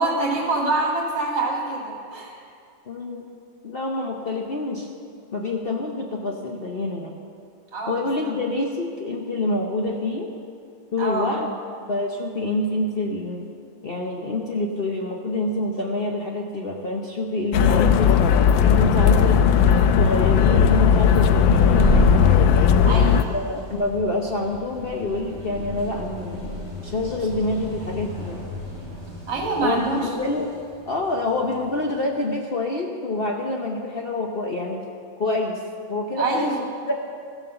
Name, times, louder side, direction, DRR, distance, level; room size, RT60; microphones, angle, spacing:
voice 1, 0.0-2.4 7.7-8.0 11.0-11.4 22.8-23.4 29.3-30.0 36.2-36.6, right 2 dB, 65° right, -2 dB, 2.9 m, -25 dB
voice 2, 2.9-3.3 3.6-4.9 5.3-7.2 7.9-10.3 10.9-11.5 11.9-13.4 13.8-18.1 18.6-22.1 23.3-28.5 29.6-30.5 30.9-34.8 35.2-35.6 35.9-36.5 36.9-37.0, left 2 dB, 55° left, 0 dB, 0.6 m, -27 dB
sound 1, 17.5-23.2, left 7 dB, 85° left, 1.3 m, -17 dB
sound 2, 21.6-31.9, left 2 dB, 25° left, 4.1 m, -29 dB
14.5 x 7.4 x 6.8 m, 2.4 s
omnidirectional pair, 2.1 m